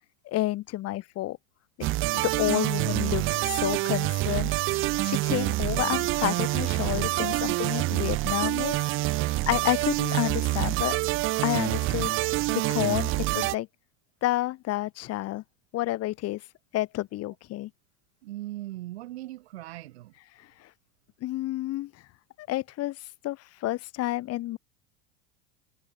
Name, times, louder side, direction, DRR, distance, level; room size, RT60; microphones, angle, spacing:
voice 1, 0.2-1.4 2.1-4.5 5.0-8.7 9.5-11.0 11.4-12.2 12.5-13.7 14.2-15.4 15.7-16.4 16.7-17.7 21.2-21.9 22.4-23.0 23.2-24.6, left 16 dB, 50° left, 3.4 m, -29 dB
sound 1, 1.8-13.5, right 19 dB, 40° right, 0.5 m, -27 dB
voice 2, 9.0-9.5 18.2-20.1, right 16 dB, 80° right, 3.9 m, -39 dB
hypercardioid pair, 95°, 31 cm